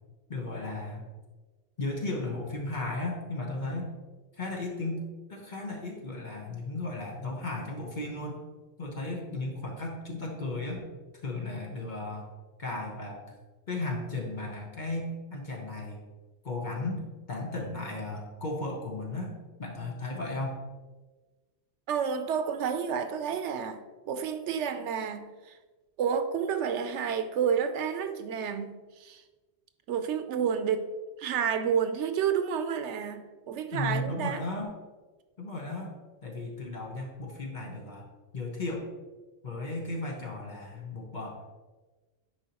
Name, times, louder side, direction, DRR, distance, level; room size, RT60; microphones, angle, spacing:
voice 1, 0.3-1.0 1.8-3.9 4.4-8.4 8.8-10.8 11.2-12.3 12.6-13.2 13.7-16.0 16.4-17.0 17.3-20.7 33.7-34.7 35.4-35.9 36.2-38.1 38.3-38.9 39.4-41.5, left 2 dB, 45° left, 0 dB, 1.1 m, -35 dB
voice 2, 21.9-23.8 24.1-25.6 26.0-29.2 29.9-30.9 31.2-34.4, right 7 dB, 90° right, 9 dB, 0.9 m, -30 dB
9.9 x 4.4 x 2.9 m, 1.3 s
omnidirectional pair, 1.2 m